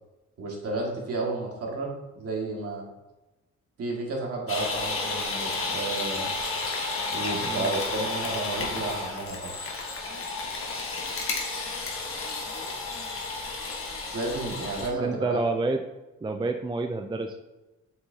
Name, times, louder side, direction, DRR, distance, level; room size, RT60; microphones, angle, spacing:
voice 1, 0.4-1.9 2.2-2.9 3.8-6.3 7.1-9.6 14.1-15.4, right 2 dB, 50° right, -2 dB, 2.2 m, -32 dB
sound 1, 4.5-14.9, left 3 dB, 45° left, 1.5 m, -32 dB
voice 2, 7.4-7.7 15.0-15.8 16.2-17.4, right 3 dB, 15° right, 5 dB, 0.4 m, -28 dB
7.7 x 6.0 x 2.8 m, 1.1 s
cardioid pair, 90°, 30 cm